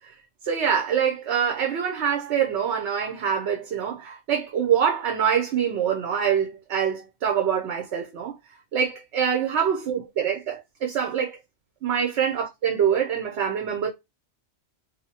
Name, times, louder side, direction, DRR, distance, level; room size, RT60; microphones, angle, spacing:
voice 1, 0.4-8.4 8.7-11.4 11.8-13.9, right 8 dB, 75° right, 1.0 m, -25 dB
2.8 x 2.2 x 4.1 m
omnidirectional pair, 1.2 m